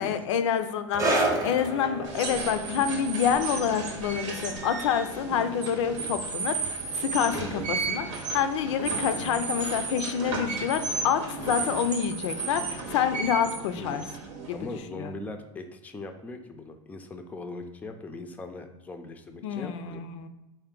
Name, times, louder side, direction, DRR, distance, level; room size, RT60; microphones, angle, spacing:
voice 1, 0.0-14.0 14.5-14.6 15.0-15.1 19.4-20.3, left 8 dB, 75° left, 9 dB, 0.4 m, -28 dB
sound 1, 0.9-7.9 8.2-8.4 9.2-9.3, right 2 dB, 20° right, 0.8 m, -33 dB
sound 2, 2.0-14.8, right 4 dB, 75° right, 0.9 m, -34 dB
sound 3, 2.2-14.5, right 5 dB, 50° right, 0.5 m, -44 dB
voice 2, 13.7-14.1 14.5-20.0, left 2 dB, 10° left, 5 dB, 0.4 m, -40 dB
3.5 x 2.6 x 3.7 m, 1.0 s
hypercardioid pair, 105°, 15 cm